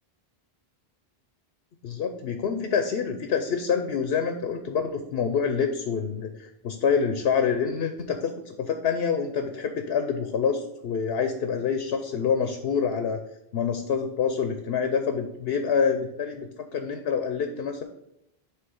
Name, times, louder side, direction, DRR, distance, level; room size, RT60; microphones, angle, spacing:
voice 1, 1.8-13.2 13.5-17.8, left 6 dB, 80° left, 6 dB, 0.9 m, -27 dB
7.9 x 3.2 x 6.2 m, 0.81 s
omnidirectional pair, 1.0 m